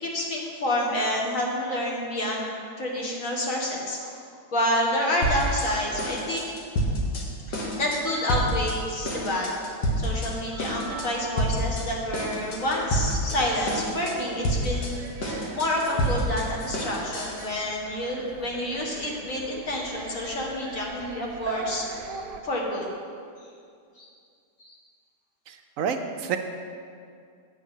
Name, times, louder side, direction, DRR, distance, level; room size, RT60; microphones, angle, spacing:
voice 1, 0.0-4.2 4.5-6.5 7.5-9.5 10.0-22.9 24.0-24.1 24.6-24.8, left 1 dB, 50° left, -2 dB, 1.8 m, -29 dB
sound 1, 5.2-5.7 6.0-7.2 7.5-8.0 8.3-8.8 9.1-10.3 10.6-11.1 11.4-11.8 12.1-13.4 13.7-14.1 14.4-17.5, equal, 80° left, 2.0 m, -28 dB
sound 2, 9.9-22.4, right 5 dB, 85° right, 1.3 m, -42 dB
voice 2, 25.5-26.4, right 7 dB, 65° right, 6 dB, 0.8 m, -29 dB
8.5 x 7.6 x 5.5 m, 2.3 s
omnidirectional pair, 1.8 m